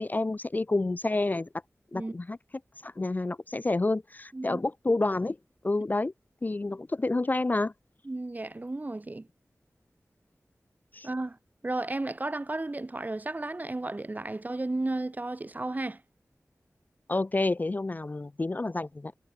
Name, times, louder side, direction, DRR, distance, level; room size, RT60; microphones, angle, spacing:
voice 1, 0.0-1.5 1.9-2.4 2.8-5.4 5.6-6.1 6.4-7.7 10.9-11.1 17.1-19.1, left 2 dB, 30° left, 0.3 m, -29 dB
voice 2, 8.1-9.3 11.0-11.4 11.6-16.0, right 2 dB, 30° right, 0.5 m, -33 dB
wide cardioid pair, 50°, 6 cm